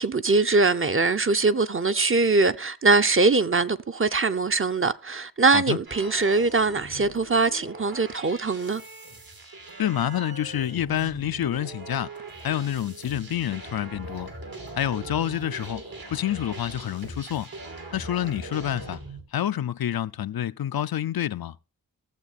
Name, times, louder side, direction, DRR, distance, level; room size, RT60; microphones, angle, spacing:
voice 1, 0.0-8.8, right 3 dB, 35° right, 0.7 m, -22 dB
sound 1, 5.9-19.2, right 2 dB, 80° right, 3.1 m, -41 dB
voice 2, 9.8-12.1 12.4-14.3 14.8-15.8 16.1-17.5 17.9-19.0 19.3-21.6, left 11 dB, 80° left, 0.5 m, -28 dB
14.5 x 7.4 x 4.1 m
wide cardioid pair, 70°, 35 cm